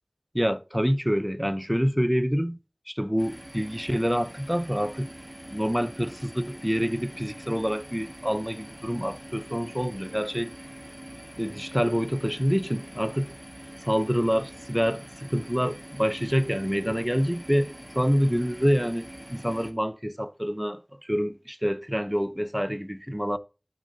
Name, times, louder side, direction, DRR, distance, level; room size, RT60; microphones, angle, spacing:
voice 1, 0.3-2.6 2.9-5.1 5.5-10.5 11.4-13.3 13.8-23.4, equal, 5° right, 0.6 m, -27 dB
sound 1, 3.2-19.7, right 1 dB, 25° right, 1.6 m, -44 dB
11.5 x 6.0 x 2.7 m
wide cardioid pair, 40°, 0 cm